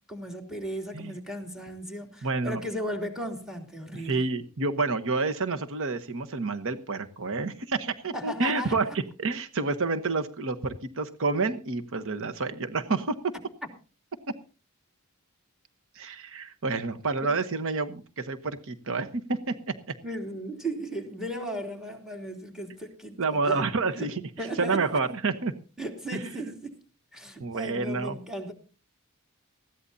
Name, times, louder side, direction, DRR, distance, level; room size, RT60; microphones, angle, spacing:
voice 1, 0.1-4.3 8.1-8.8 20.0-23.6 23.9-24.1 24.4-24.9 25.8-26.8 27.1-28.5, right 1 dB, 5° right, 2.9 m, -36 dB
voice 2, 2.2-2.6 3.9-8.9 9.2-13.1 15.9-19.9 23.2-25.5 26.1-26.3 27.4-28.2, right 3 dB, 65° right, 1.1 m, -29 dB
19.5 x 15.0 x 2.7 m
head